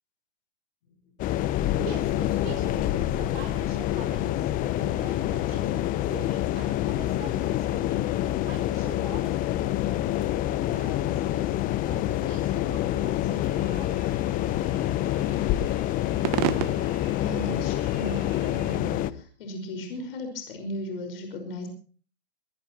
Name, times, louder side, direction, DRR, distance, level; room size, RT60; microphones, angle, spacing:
sound 1, 1.2-19.1, left 13 dB, 25° left, 0.9 m, -27 dB
voice 1, 1.8-10.4 10.7-14.1, right 8 dB, 65° right, 2 dB, 3.9 m, -44 dB
sound 2, 13.4-18.8, right 20 dB, 35° right, 0.8 m, -36 dB
voice 2, 17.1-21.7, left 1 dB, 60° left, 6 dB, 5.6 m, -36 dB
23.5 x 18.5 x 3.1 m, 0.41 s
hypercardioid pair, 120°, 32 cm